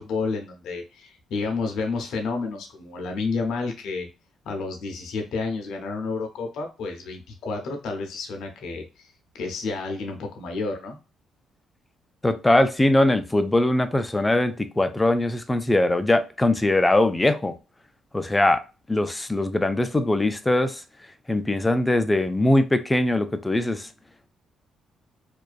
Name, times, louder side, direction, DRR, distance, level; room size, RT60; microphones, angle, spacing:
voice 1, 0.0-4.1 4.5-9.1 9.3-11.0, left 4 dB, 75° left, 0.5 m, -30 dB
voice 2, 12.2-17.5 18.1-18.6 18.9-20.8 21.3-23.9, left 1 dB, 15° left, 0.3 m, -21 dB
2.4 x 2.2 x 2.3 m
cardioid pair, 90°, 0 cm